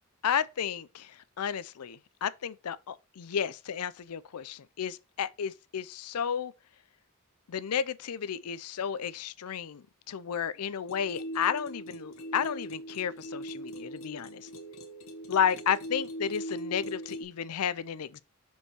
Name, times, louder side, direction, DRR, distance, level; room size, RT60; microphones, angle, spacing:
voice 1, 0.2-6.5 7.5-14.5 15.3-18.2, left 8 dB, 85° left, 0.5 m, -32 dB
sound 1, 10.9-17.2, right 1 dB, 65° left, 1.5 m, -41 dB
6.5 x 5.3 x 2.9 m
head